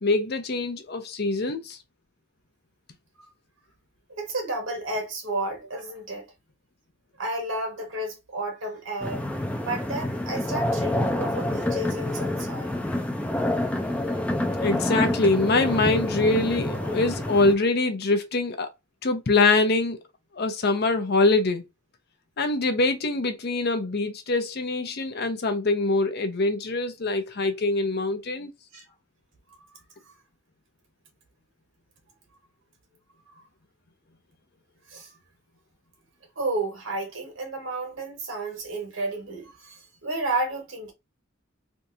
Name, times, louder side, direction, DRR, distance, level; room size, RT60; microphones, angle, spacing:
voice 1, 0.0-1.8 14.6-18.7 19.0-20.0 20.4-21.7 22.4-28.5, left 3 dB, 55° left, 0.7 m, -24 dB
voice 2, 4.1-6.3 7.2-9.3 9.6-12.8 28.7-28.8 29.5-29.6 33.3-33.4 34.9-35.1 36.3-40.9, right 2 dB, 85° right, 1.7 m, -32 dB
sound 1, 9.0-17.5, left 1 dB, 5° left, 0.5 m, -27 dB
3.5 x 2.7 x 2.7 m
head